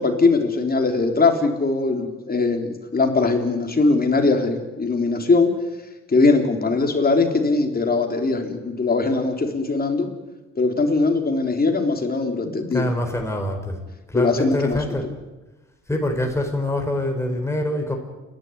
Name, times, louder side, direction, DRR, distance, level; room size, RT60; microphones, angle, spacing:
voice 1, 0.0-5.6 6.1-10.1 10.6-12.9 14.1-14.8, left 3 dB, 30° left, 4 dB, 3.8 m, -20 dB
voice 2, 12.7-13.8 14.1-15.0 15.9-18.0, left 1 dB, 10° left, 3 dB, 4.4 m, -25 dB
29.0 x 12.0 x 9.6 m, 1.1 s
cardioid pair, 90°, 30 cm